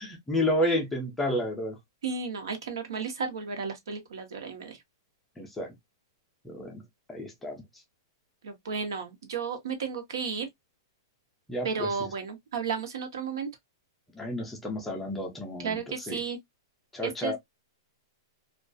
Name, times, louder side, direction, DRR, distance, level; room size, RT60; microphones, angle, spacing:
voice 1, 0.1-1.8 5.4-5.7 6.4-6.8 7.1-7.6 11.5-12.1 14.1-16.2 16.9-17.4, left 1 dB, 5° left, 0.4 m, -31 dB
voice 2, 2.0-4.8 8.4-10.5 11.6-13.5 15.6-16.4 17.0-17.4, right 5 dB, 80° right, 0.8 m, -33 dB
2.4 x 2.2 x 2.4 m
supercardioid pair, 175°, 2 cm